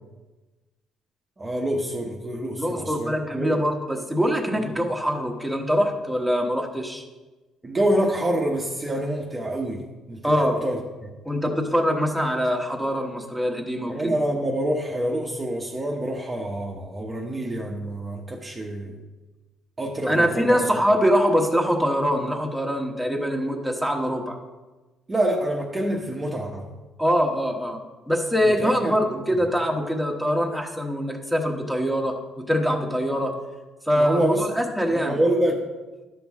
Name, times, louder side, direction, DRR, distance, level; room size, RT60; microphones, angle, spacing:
voice 1, 1.4-3.6 4.5-4.7 7.6-11.1 13.9-19.0 19.8-20.7 25.1-26.7 28.4-29.0 33.9-34.4 34.9-35.6, right 1 dB, 20° right, 0 dB, 0.9 m, -26 dB
voice 2, 2.6-7.0 10.2-10.6 11.2-14.1 20.1-24.4 27.0-27.8 28.1-33.3 33.9-35.2, equal, ahead, 1 dB, 1.1 m, -23 dB
11.5 x 6.0 x 3.6 m, 1.2 s
cardioid pair, 115°, 0 cm